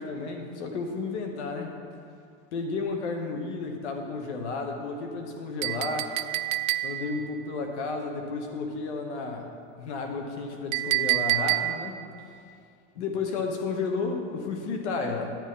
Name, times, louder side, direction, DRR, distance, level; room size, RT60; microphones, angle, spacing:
voice 1, 0.0-1.7 2.5-6.1 6.8-9.5 9.8-12.0 12.9-15.4, left 4 dB, 55° left, 3 dB, 1.2 m, -32 dB
Chink clink, 5.6-7.2 10.7-12.0, right 17 dB, 70° right, 0.6 m, -27 dB
10.5 x 9.7 x 3.7 m, 2.3 s
supercardioid pair, 180°, 40 cm